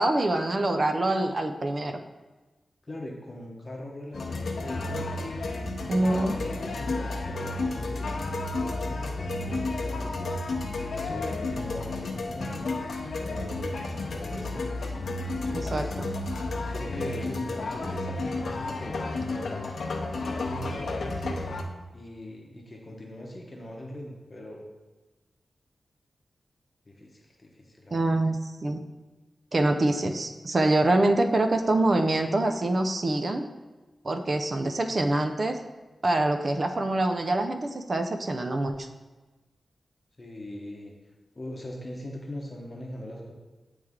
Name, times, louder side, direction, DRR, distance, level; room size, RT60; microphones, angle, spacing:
voice 1, 0.0-1.9 5.9-6.4 15.5-15.8 27.9-28.8 29.5-33.4 34.0-35.6 36.0-38.9, right 2 dB, 45° right, 6 dB, 0.4 m, -25 dB
voice 2, 2.8-5.3 6.0-10.3 10.8-12.6 13.2-15.0 15.3-15.9 16.7-19.6 20.0-21.2 21.9-24.6 26.9-28.2 40.2-40.9 41.4-43.3, left 1 dB, 35° left, -1 dB, 0.8 m, -41 dB
sound 1, 4.1-21.6, left 2 dB, 85° left, 0.6 m, -32 dB
9.2 x 3.2 x 3.6 m, 1.2 s
wide cardioid pair, 80°, 0 cm